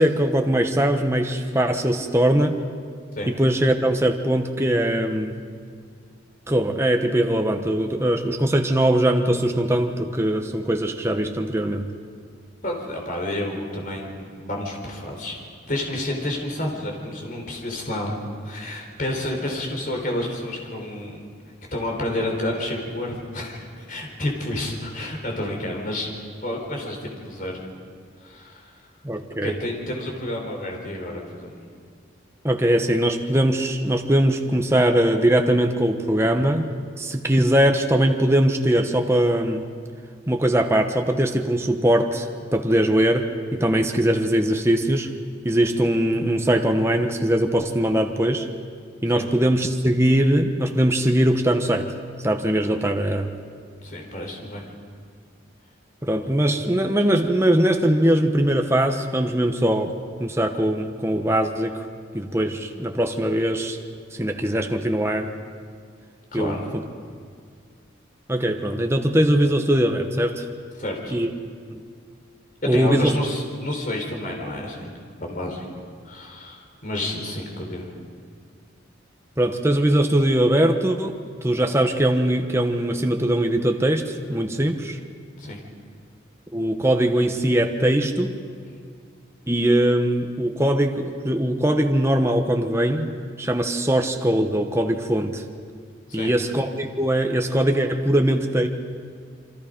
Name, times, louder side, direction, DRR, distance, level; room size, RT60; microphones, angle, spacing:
voice 1, 0.0-2.6 3.3-5.4 6.5-11.9 29.0-29.5 32.4-36.7 37.0-39.7 40.3-45.1 45.4-48.5 49.0-51.9 52.2-53.3 56.0-59.9 60.2-61.9 62.1-63.8 64.1-65.3 66.3-66.6 68.3-70.5 71.1-71.3 71.7-71.8 72.7-73.2 79.4-85.0 86.5-88.4 89.5-93.1 93.4-95.4 96.1-98.7, right 1 dB, 15° right, 4 dB, 1.0 m, -21 dB
voice 2, 12.6-14.1 14.4-15.4 15.7-21.2 21.7-26.1 26.4-27.6 28.2-28.7 29.4-31.5 49.1-49.3 53.8-54.6 66.3-66.7 70.8-71.2 72.6-74.9 75.2-75.7 76.0-77.9 85.4-85.6 96.1-96.3, left 1 dB, 45° left, 1 dB, 4.1 m, -30 dB
27.5 x 24.5 x 5.2 m, 2.1 s
head